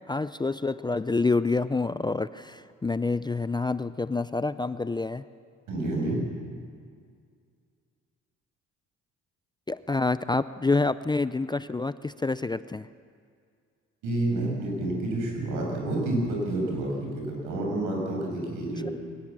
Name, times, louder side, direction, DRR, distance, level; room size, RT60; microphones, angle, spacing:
voice 1, 0.1-5.2 9.7-12.9, left 3 dB, 15° left, 14 dB, 0.5 m, -27 dB
voice 2, 5.7-6.2 14.0-18.9, right 2 dB, 85° right, 0 dB, 7.3 m, -29 dB
22.5 x 19.5 x 7.5 m, 2.2 s
cardioid pair, 90°, 30 cm